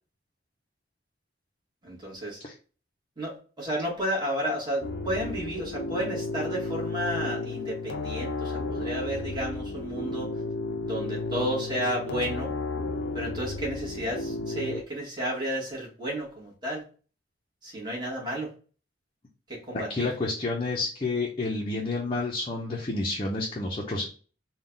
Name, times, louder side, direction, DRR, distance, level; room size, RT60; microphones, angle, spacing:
voice 1, 1.8-2.4 3.2-10.3 10.8-12.5 13.1-16.8 17.6-18.5 19.5-20.1, equal, 25° right, -3 dB, 1.5 m, -32 dB
sound 1, 4.8-14.8, left 3 dB, 85° left, 0.5 m, -33 dB
voice 2, 19.7-24.1, left 3 dB, 30° left, -2 dB, 0.6 m, -30 dB
3.8 x 2.3 x 3.8 m, 0.38 s
head